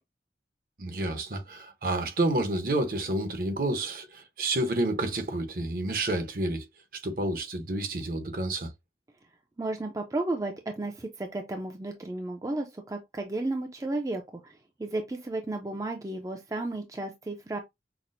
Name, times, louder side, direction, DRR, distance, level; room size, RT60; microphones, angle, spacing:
voice 1, 0.8-6.7 6.9-8.7, right 2 dB, 55° right, 0.8 m, -29 dB
voice 2, 9.6-17.6, right 2 dB, 20° right, 0.4 m, -33 dB
5.8 x 2.0 x 2.5 m
head